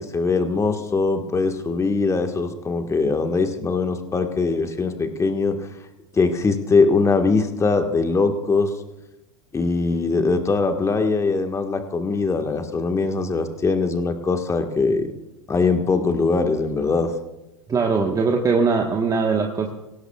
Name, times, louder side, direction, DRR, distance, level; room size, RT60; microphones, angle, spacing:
voice 1, 0.0-5.6 6.1-8.7 9.5-15.1 15.5-17.1, left 4 dB, 15° left, 6 dB, 1.6 m, -21 dB
voice 2, 17.7-19.7, right 4 dB, 20° right, 2 dB, 1.3 m, -21 dB
23.5 x 17.0 x 2.4 m, 0.98 s
hypercardioid pair, 95°, 17 cm